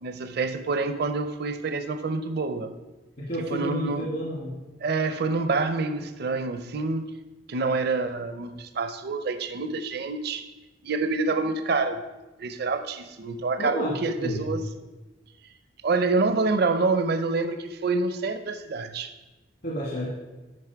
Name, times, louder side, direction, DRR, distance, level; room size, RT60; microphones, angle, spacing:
voice 1, 0.0-2.7 3.5-4.1 4.8-7.2 7.5-10.5 10.8-12.0 12.4-14.6 15.8-19.1, right 3 dB, 60° right, 9 dB, 0.5 m, -27 dB
voice 2, 3.2-4.5 13.6-14.4 19.6-20.1, equal, 55° left, -4 dB, 1.5 m, -30 dB
9.5 x 5.4 x 4.5 m, 1.1 s
head